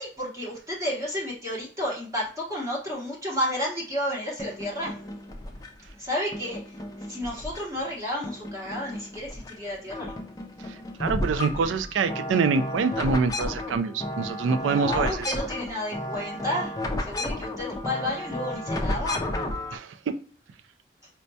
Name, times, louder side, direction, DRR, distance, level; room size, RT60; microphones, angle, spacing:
voice 1, 0.0-5.0 6.0-10.1 14.7-16.7 17.0-19.2, equal, 15° right, 0.8 m, -31 dB
sound 1, 4.4-5.9 6.3-7.9 8.2-9.5 9.8-19.8, left 1 dB, 20° left, 0.4 m, -33 dB
voice 2, 10.6-15.4 19.7-20.1, right 5 dB, 85° right, 0.3 m, -26 dB
4.4 x 2.2 x 2.5 m
head